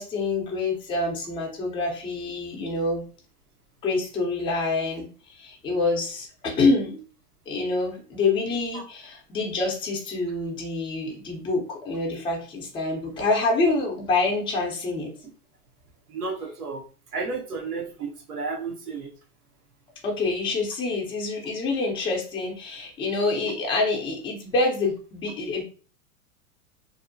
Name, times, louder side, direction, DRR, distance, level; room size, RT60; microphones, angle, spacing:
voice 1, 0.0-3.0 3.8-7.0 7.5-15.1 20.0-25.6, left 3 dB, 10° left, 0 dB, 0.4 m, -26 dB
voice 2, 16.1-16.8 17.1-19.1, right 4 dB, 90° right, 1 dB, 0.8 m, -32 dB
2.6 x 2.0 x 2.5 m, 0.39 s
hypercardioid pair, 110°, 45 cm